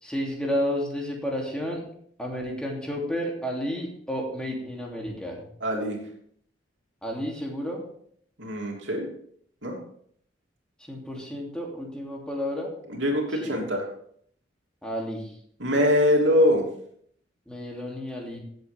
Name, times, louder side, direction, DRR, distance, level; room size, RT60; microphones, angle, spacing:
voice 1, 0.0-1.8 2.2-5.4 7.0-7.8 10.9-12.7 13.4-13.5 14.8-15.3 17.5-18.4, equal, 5° left, -1 dB, 2.8 m, -31 dB
voice 2, 5.6-6.0 8.4-9.1 9.6-9.7 12.9-13.8 15.6-16.6, equal, 75° right, 0 dB, 3.0 m, -23 dB
16.5 x 8.0 x 3.5 m, 0.65 s
head